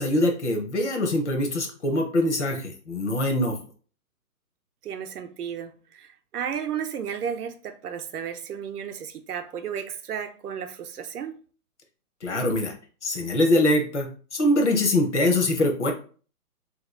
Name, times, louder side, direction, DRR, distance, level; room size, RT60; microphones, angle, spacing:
voice 1, 0.0-3.6 12.2-12.7 13.0-15.9, left 1 dB, 50° left, 0.8 m, -23 dB
voice 2, 4.8-11.4, right 8 dB, 80° right, 0.7 m, -33 dB
2.9 x 2.3 x 3.6 m
hypercardioid pair, 175°, 45 cm